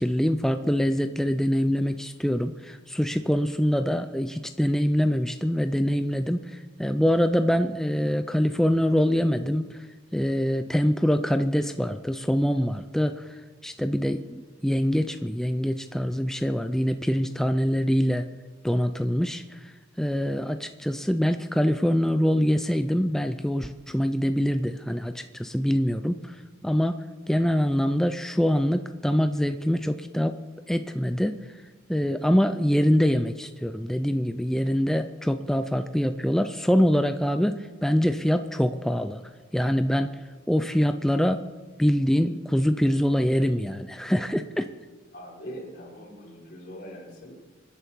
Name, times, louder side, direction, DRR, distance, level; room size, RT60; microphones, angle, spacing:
voice 1, 0.0-9.8 10.1-18.3 18.6-26.4 26.6-27.0 27.3-30.4 30.7-31.4 31.9-39.2 39.5-40.1 40.5-41.4 41.8-44.7, equal, ahead, 8 dB, 0.4 m, -24 dB
voice 2, 45.1-47.3, equal, 50° left, -3 dB, 5.1 m, -42 dB
26.0 x 10.5 x 4.6 m, 1.4 s
head